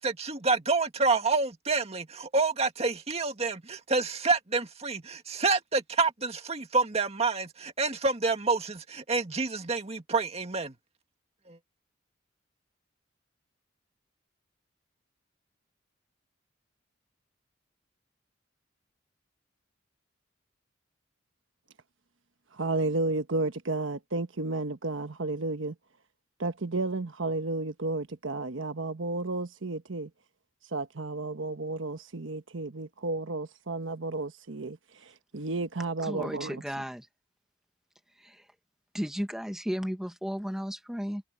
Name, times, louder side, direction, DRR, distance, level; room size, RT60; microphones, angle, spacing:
voice 1, 0.0-10.7 11.5-11.6, right 3 dB, 35° right, 2.0 m, -28 dB
voice 2, 22.5-25.7 26.4-30.1 30.7-34.8 35.0-36.6, right 2 dB, 85° right, 1.2 m, -32 dB
voice 3, 36.0-37.1 38.2-38.4 38.9-41.2, equal, 5° right, 1.4 m, -34 dB
head